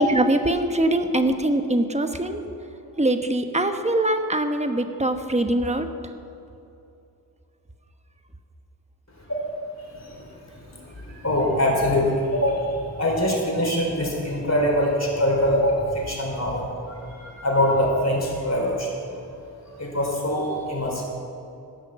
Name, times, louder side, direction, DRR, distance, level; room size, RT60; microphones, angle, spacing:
voice 1, 0.0-2.4 3.0-5.9, right 1 dB, 15° right, 6 dB, 1.1 m, -22 dB
voice 2, 9.8-10.5 11.0-18.9 19.8-21.0, left 1 dB, 40° left, -1 dB, 3.8 m, -24 dB
17.0 x 6.4 x 7.4 m, 2.7 s
cardioid pair, 50°, 41 cm